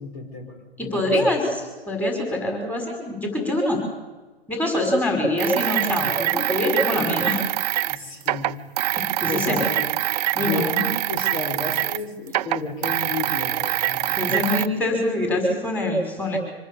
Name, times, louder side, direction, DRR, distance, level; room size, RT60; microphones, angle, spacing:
voice 1, 0.0-1.4 7.8-8.5 9.3-9.9 10.3-14.4, left 4 dB, 50° left, 6 dB, 5.1 m, -33 dB
voice 2, 0.8-3.8 4.5-7.5 9.2-9.7 10.4-10.8 14.2-16.4, left 1 dB, 5° left, 2 dB, 5.6 m, -24 dB
sound 1, 5.4-12.0 12.3-14.7, right 15 dB, 40° right, 0.8 m, -24 dB
25.5 x 20.0 x 7.1 m, 1.2 s
figure-of-eight pair, 125°, 32 cm